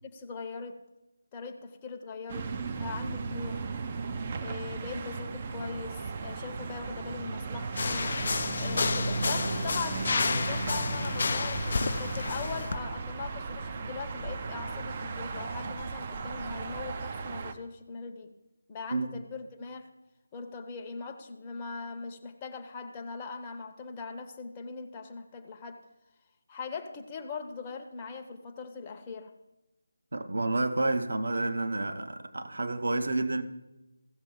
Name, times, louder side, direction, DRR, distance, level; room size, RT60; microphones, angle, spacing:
voice 1, 0.0-0.8 1.3-3.7 4.4-8.2 8.6-18.3 18.7-19.9 20.3-25.8 26.5-29.3, left 4 dB, 20° left, 0.7 m, -40 dB
sound 1, 2.3-17.5, right 4 dB, 30° right, 0.5 m, -36 dB
stairs steps, 7.7-12.8, left 4 dB, 40° left, 0.4 m, -31 dB
voice 2, 30.1-33.4, right 2 dB, 55° right, 0.8 m, -29 dB
15.5 x 6.9 x 3.9 m
figure-of-eight pair, 160°, 0 cm